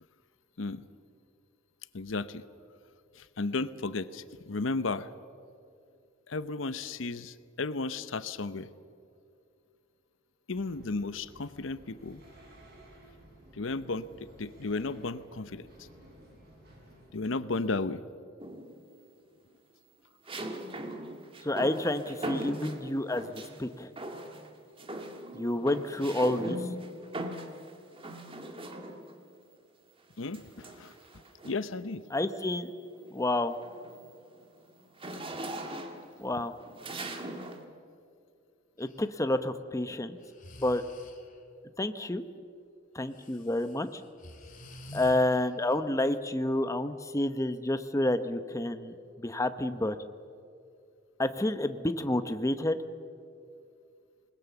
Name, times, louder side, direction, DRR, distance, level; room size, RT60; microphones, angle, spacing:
voice 1, 1.9-2.4 3.2-5.1 6.3-8.7 10.5-12.2 13.5-15.9 17.1-18.0 30.2-30.9 31.4-32.0, left 3 dB, 80° left, 14 dB, 0.8 m, -34 dB
sound 1, 10.5-17.1, right 1 dB, 55° right, 7.5 m, -55 dB
sound 2, 18.4-18.9 20.3-23.6 24.0-24.5 24.8-29.2 30.3-31.7 32.2-32.5 32.9-37.6, right 1 dB, 30° right, 1.9 m, -40 dB
voice 2, 21.4-23.9 25.3-26.6 32.1-32.7 33.1-33.6 36.2-36.5 38.8-40.2 40.6-40.8 41.8-42.2 42.9-43.9 44.9-50.0 51.2-52.8, left 1 dB, 15° left, 10 dB, 0.8 m, -29 dB
Breathing, 38.8-39.0 40.2-41.5 43.1-45.8, left 1 dB, 45° left, 2.5 m, -49 dB
27.0 x 20.5 x 7.1 m, 2.4 s
head